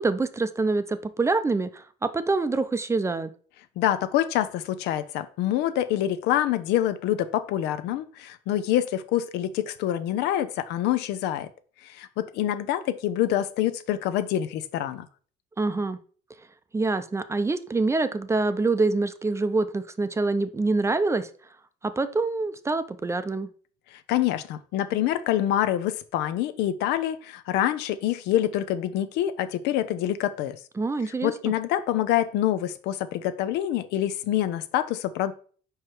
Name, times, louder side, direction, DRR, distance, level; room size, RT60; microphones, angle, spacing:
voice 1, 0.0-3.3 15.6-16.0 16.7-21.3 21.8-23.5 30.8-31.5, right 3 dB, 15° right, 11 dB, 0.5 m, -25 dB
voice 2, 3.8-11.5 11.8-15.1 23.9-30.6 31.1-35.3, left 12 dB, 90° left, 12 dB, 0.6 m, -26 dB
4.8 x 4.8 x 4.4 m, 0.43 s
cardioid pair, 110°, 17 cm